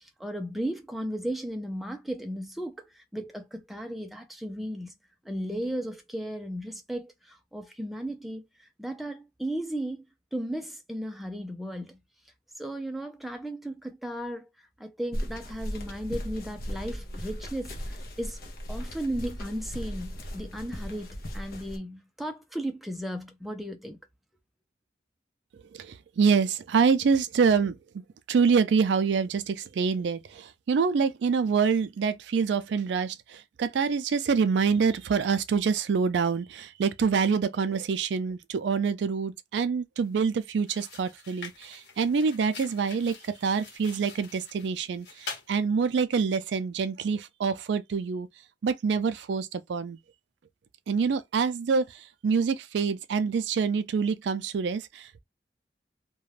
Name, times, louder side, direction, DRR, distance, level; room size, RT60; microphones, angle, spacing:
voice 1, 0.0-5.0 5.2-10.0 10.3-12.0 12.6-14.5 14.8-18.4 18.7-24.0, right 1 dB, ahead, 0.4 m, -35 dB
sound 1, 15.1-21.8, equal, 55° left, 0.6 m, -37 dB
voice 2, 25.7-27.8 28.3-48.3 48.6-50.0 50.9-55.2, right 5 dB, 80° right, 0.4 m, -26 dB
sound 2, 40.0-40.2 40.6-45.5, left 4 dB, 75° left, 1.1 m, -45 dB
2.4 x 2.2 x 3.1 m
head